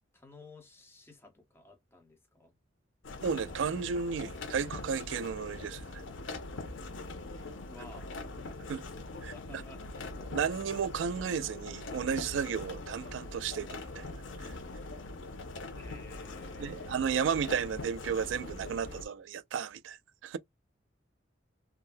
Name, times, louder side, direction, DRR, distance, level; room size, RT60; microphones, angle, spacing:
voice 1, 0.1-2.6 7.7-8.1 9.1-10.2 15.8-17.1, left 2 dB, 15° left, 0.9 m, -54 dB
sound 1, 3.0-19.0, left 2 dB, 80° left, 0.7 m, -42 dB
voice 2, 3.2-6.0 8.7-8.8 9.2-9.6 10.3-14.1 14.4-14.5 16.6-20.0 20.2-20.4, right 6 dB, 75° right, 0.3 m, -33 dB
3.6 x 2.1 x 2.6 m
head